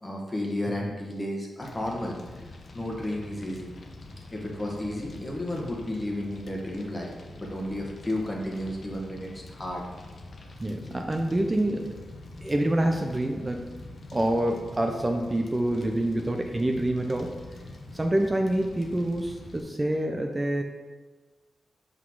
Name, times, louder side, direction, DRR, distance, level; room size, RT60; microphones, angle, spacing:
voice 1, 0.0-2.1 2.7-3.7 4.3-7.1 7.4-9.8, left 1 dB, 25° left, -1 dB, 1.5 m, -32 dB
Fire, 1.6-19.6, left 2 dB, 65° left, 0.9 m, -45 dB
voice 2, 10.6-11.9 12.4-13.7 14.1-17.3 17.9-20.6, right 1 dB, 25° right, 3 dB, 0.5 m, -27 dB
5.6 x 4.0 x 4.7 m, 1.3 s
cardioid pair, 60°, 0 cm